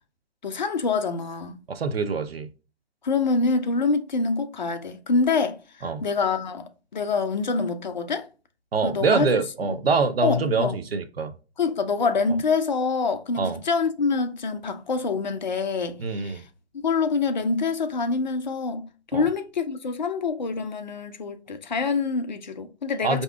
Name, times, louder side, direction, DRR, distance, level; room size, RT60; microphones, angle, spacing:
voice 1, 0.4-1.6 3.0-8.3 8.8-9.3 9.6-9.8 10.2-10.8 11.6-16.4 16.8-23.2, left 4 dB, 45° left, 0.4 m, -26 dB
voice 2, 1.7-2.5 5.8-6.0 8.7-11.3 13.4-13.6 16.0-16.4 19.1-19.3 23.0-23.2, right 4 dB, 60° right, 0.6 m, -25 dB
4.5 x 2.7 x 2.2 m
figure-of-eight pair, 140°, 33 cm